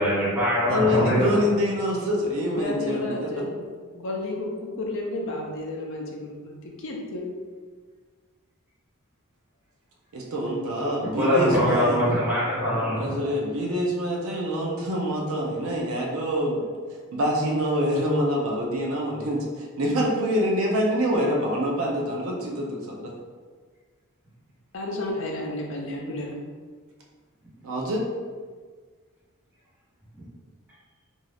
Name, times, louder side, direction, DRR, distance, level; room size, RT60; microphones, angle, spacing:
voice 1, 0.0-1.4 11.2-13.2 30.1-30.2, equal, 10° right, -11 dB, 0.9 m, -23 dB
voice 2, 0.7-3.3 10.1-12.1 13.0-16.7 17.1-23.1 27.6-28.0, equal, 70° right, -2 dB, 0.5 m, -26 dB
voice 3, 2.6-3.6 3.9-7.3 24.7-26.3, left 2 dB, 60° left, -1 dB, 0.5 m, -32 dB
2.5 x 2.3 x 3.3 m, 1.5 s
head